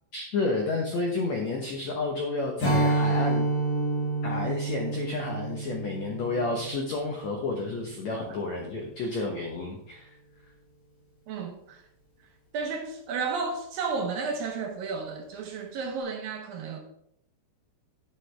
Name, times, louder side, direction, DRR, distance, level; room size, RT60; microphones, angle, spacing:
voice 1, 0.1-3.5 4.2-10.1, left 3 dB, 75° left, 1.6 m, -31 dB
Strum, 2.6-8.0, right 2 dB, 45° left, 5.1 m, -29 dB
voice 2, 11.3-11.8 12.5-16.8, right 4 dB, 70° right, 2.3 m, -32 dB
11.5 x 8.4 x 3.4 m
omnidirectional pair, 4.8 m